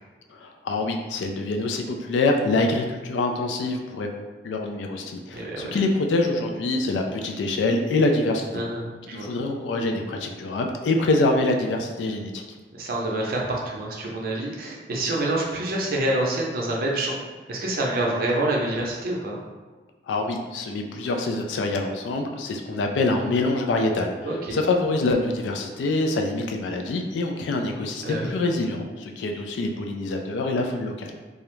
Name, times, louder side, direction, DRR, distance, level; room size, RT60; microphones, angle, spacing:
voice 1, 0.3-4.1 4.4-8.6 9.1-12.4 20.1-31.2, left 2 dB, 85° left, 3 dB, 0.3 m, -25 dB
voice 2, 5.3-5.8 8.5-8.8 9.1-9.3 12.7-17.2 17.5-19.4 24.3-24.6 28.0-28.3, right 1 dB, 55° right, -2 dB, 0.5 m, -27 dB
2.3 x 2.0 x 3.0 m, 1.3 s
head